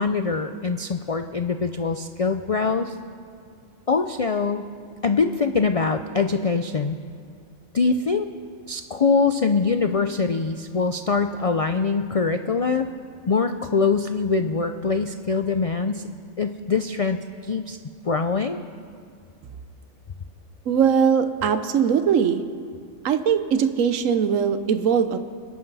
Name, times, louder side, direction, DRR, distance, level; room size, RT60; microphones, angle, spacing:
voice 1, 0.0-2.9 3.9-4.7 5.0-7.0 7.7-8.3 8.7-12.9 13.3-16.1 16.4-17.8 18.0-18.6, left 4 dB, 70° left, 8 dB, 0.3 m, -23 dB
voice 2, 20.7-22.4 23.0-25.2, right 7 dB, 80° right, 10 dB, 1.2 m, -20 dB
27.0 x 11.5 x 4.1 m, 2.3 s
omnidirectional pair, 1.4 m